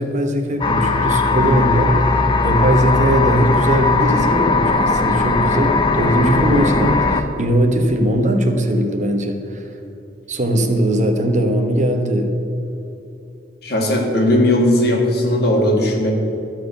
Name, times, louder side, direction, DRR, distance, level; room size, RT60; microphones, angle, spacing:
voice 1, 0.0-2.0 2.4-9.6 10.3-12.3, right 1 dB, 40° right, 4 dB, 0.9 m, -19 dB
sound 1, 0.6-7.2, left 3 dB, 25° left, 0.5 m, -18 dB
voice 2, 13.6-16.1, left 1 dB, 60° left, 0 dB, 1.8 m, -17 dB
13.0 x 4.6 x 7.9 m, 2.9 s
head